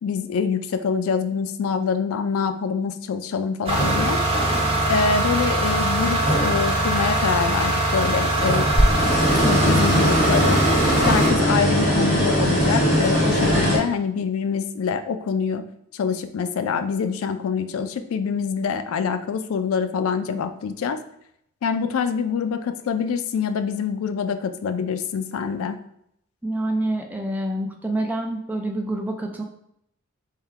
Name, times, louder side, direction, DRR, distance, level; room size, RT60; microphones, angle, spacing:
voice 1, 0.0-4.2 4.9-8.7 9.4-10.6 11.1-15.6 15.9-21.0 21.6-25.8, left 6 dB, 75° left, 9 dB, 0.3 m, -25 dB
sound 1, 3.7-11.3, right 1 dB, 30° right, 1.0 m, -22 dB
sound 2, 3.8-5.0 5.4-7.0 7.4-7.5 8.2-13.8, equal, 30° left, 1.2 m, -21 dB
voice 2, 26.4-29.4, right 1 dB, 10° right, 2 dB, 0.4 m, -27 dB
3.7 x 2.2 x 4.4 m, 0.73 s
head